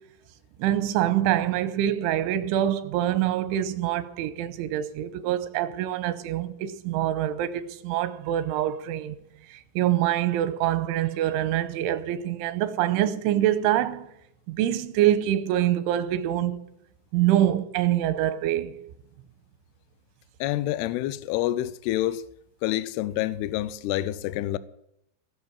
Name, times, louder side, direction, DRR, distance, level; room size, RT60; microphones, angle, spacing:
voice 1, 0.6-9.2 9.5-14.1 14.5-16.6 17.1-18.9, right 12 dB, 90° right, 3.2 m, -25 dB
voice 2, 20.4-22.2 22.6-24.6, left 14 dB, 85° left, 2.3 m, -27 dB
19.0 x 6.4 x 8.8 m
omnidirectional pair, 5.4 m